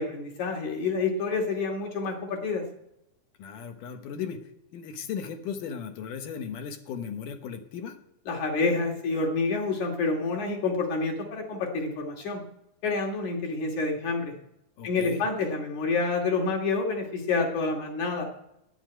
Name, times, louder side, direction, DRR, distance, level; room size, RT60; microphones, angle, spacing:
voice 1, 0.0-2.7 8.3-12.4 12.8-14.3 14.8-18.3, left 3 dB, 65° left, 0 dB, 3.8 m, -28 dB
voice 2, 3.4-8.0 14.8-15.2, left 7 dB, 80° left, 6 dB, 2.8 m, -37 dB
11.5 x 7.2 x 9.2 m, 0.82 s
omnidirectional pair, 3.7 m